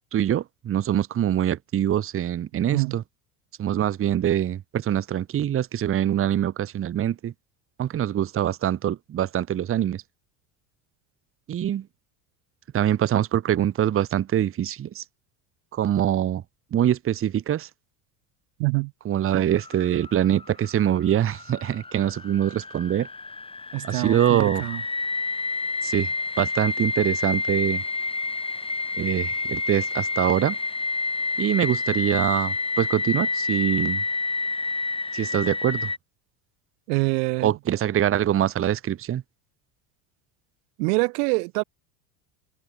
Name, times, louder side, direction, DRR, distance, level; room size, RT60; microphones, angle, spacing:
voice 1, 0.1-3.0 3.6-7.3 7.8-10.0 11.5-11.9 12.7-15.0 15.7-16.4 16.7-17.7 19.0-23.1 23.8-24.6 25.8-27.8 29.0-30.6 31.4-34.0 35.1-35.9 37.4-39.2, right 10 dB, 30° right, 1.1 m, -24 dB
voice 2, 18.6-18.9 19.3-19.5 23.7-24.8 36.9-37.5 40.8-41.6, right 33 dB, 75° right, 1.3 m, -25 dB
sound 1, 19.5-36.0, left 3 dB, 10° left, 2.8 m, -29 dB
supercardioid pair, 125°, 46 cm